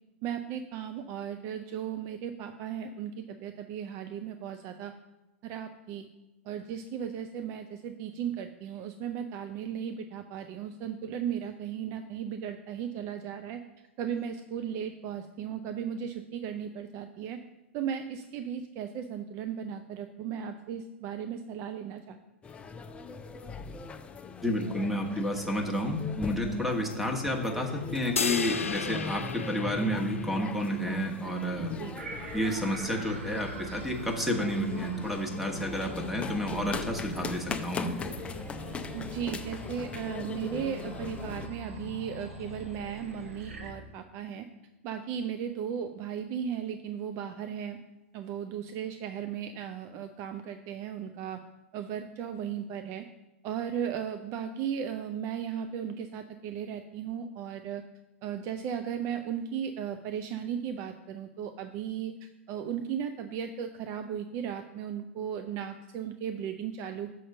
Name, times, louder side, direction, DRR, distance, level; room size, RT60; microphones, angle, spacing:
voice 1, 0.2-4.9 5.4-6.1 6.5-13.6 14.0-17.4 17.7-22.2 31.6-31.9 38.9-44.5 44.8-47.8 48.1-51.4 51.7-53.0 53.4-57.8 58.2-67.1, right 8 dB, 40° right, 8 dB, 0.5 m, -36 dB
sound 1, 22.4-41.5, left 5 dB, 15° left, 0.5 m, -40 dB
voice 2, 24.4-31.8 32.3-37.9, equal, ahead, 2 dB, 1.2 m, -30 dB
sound 2, 28.2-30.7, left 5 dB, 85° left, 0.4 m, -33 dB
sound 3, 32.0-43.7, right 1 dB, 75° right, 1.0 m, -43 dB
6.4 x 4.3 x 6.5 m, 1.0 s
figure-of-eight pair, 100°, 7 cm